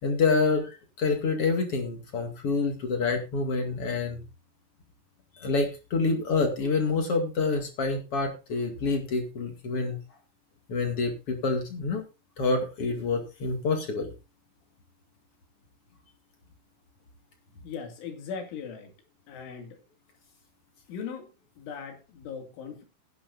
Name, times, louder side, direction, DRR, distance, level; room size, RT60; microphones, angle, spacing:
voice 1, 0.0-4.2 5.4-10.0 10.7-12.0 12.4-14.1, left 4 dB, 50° left, 3 dB, 1.8 m, -27 dB
voice 2, 17.6-18.9 19.3-19.8 20.9-22.8, left 6 dB, 70° left, 4 dB, 4.6 m, -39 dB
18.0 x 10.5 x 2.6 m, 0.28 s
omnidirectional pair, 5.9 m